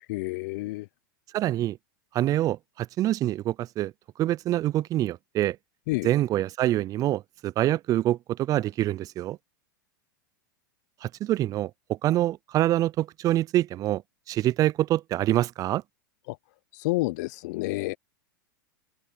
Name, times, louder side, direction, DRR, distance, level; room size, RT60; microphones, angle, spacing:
voice 1, 0.1-0.9 5.9-6.1 16.3-16.4 16.7-18.0, left 21 dB, 60° left, 0.7 m, -29 dB
voice 2, 1.3-1.8 2.1-3.9 4.2-5.6 6.0-9.4 11.0-14.0 14.3-15.8, right 14 dB, 35° right, 0.5 m, -25 dB
open air
hypercardioid pair, 105°, 11 cm